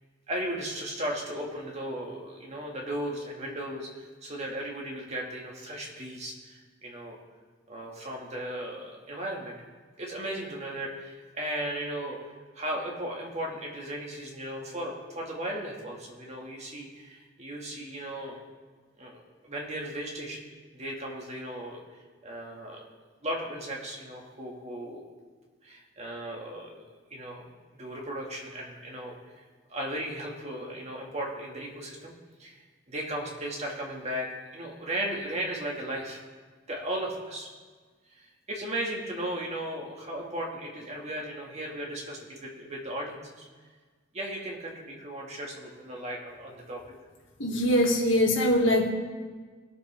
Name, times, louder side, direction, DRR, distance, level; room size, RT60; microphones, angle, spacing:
voice 1, 0.3-7.2 7.7-9.5 10.0-12.2 12.6-18.4 19.0-20.5 20.7-21.8 22.2-22.8 23.2-25.0 25.6-26.8 27.1-27.4 27.7-29.4 29.7-32.1 32.4-32.6 32.9-36.2 36.7-37.5 38.2-43.5 44.1-46.8, right 1 dB, 35° right, -1 dB, 2.0 m, -36 dB
voice 2, 47.4-48.9, left 1 dB, 75° left, 0 dB, 2.0 m, -23 dB
20.5 x 7.3 x 3.5 m, 1.4 s
head